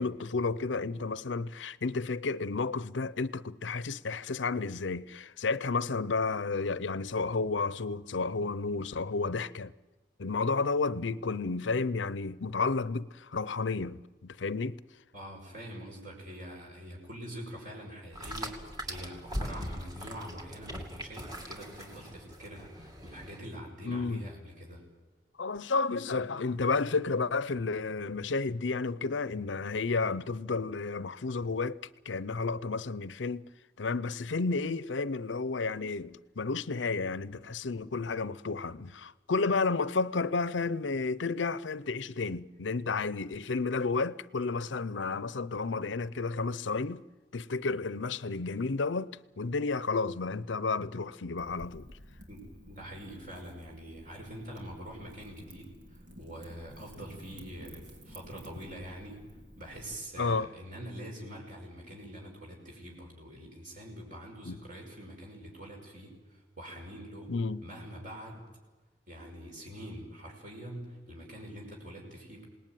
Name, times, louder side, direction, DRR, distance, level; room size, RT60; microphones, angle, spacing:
voice 1, 0.0-9.7 10.2-14.8 23.9-24.2 25.4-31.8 32.1-33.5 33.8-47.0 47.3-49.1 49.4-51.9 60.2-60.5 64.5-64.6 67.3-67.6, left 4 dB, 80° left, 0.7 m, -31 dB
voice 2, 15.1-24.8 52.3-59.2 59.6-67.3 67.6-68.4 69.1-72.5, equal, 45° right, 5.8 m, -45 dB
sound 1, 18.1-23.4, equal, 20° right, 2.7 m, -41 dB
Wind / Fire, 51.4-59.9, equal, 70° right, 4.2 m, -52 dB
27.0 x 19.0 x 9.2 m
head